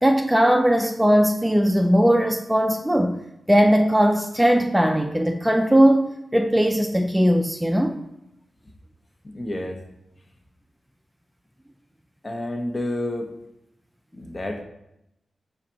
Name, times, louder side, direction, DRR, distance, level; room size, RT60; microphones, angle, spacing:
voice 1, 0.0-3.2 3.5-8.0, equal, 10° right, 0.3 m, -19 dB
voice 2, 9.3-9.8 12.2-13.3 14.1-14.6, left 1 dB, 35° left, 0.8 m, -29 dB
4.9 x 2.3 x 4.3 m
cardioid pair, 45°, 0 cm